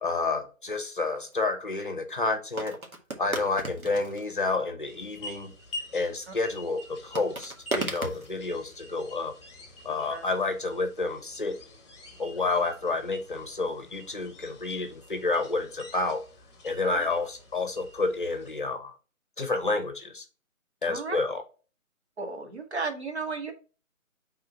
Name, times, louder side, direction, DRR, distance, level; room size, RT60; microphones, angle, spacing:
voice 1, 0.0-2.8 3.2-5.5 5.9-9.3 9.8-11.6 12.2-16.2 16.6-18.9 19.4-20.2 20.8-21.4, left 3 dB, 40° left, 7 dB, 0.8 m, -29 dB
sound 1, 1.3-1.4 2.6-4.5 7.2-8.4, right 1 dB, 90° right, 1.7 m, -34 dB
sound 2, 4.8-18.6, left 1 dB, 20° left, 1.1 m, -47 dB
voice 2, 20.8-21.2 22.2-23.5, right 4 dB, 50° right, 3 dB, 1.5 m, -34 dB
4.7 x 3.8 x 5.6 m, 0.35 s
figure-of-eight pair, 150°, 41 cm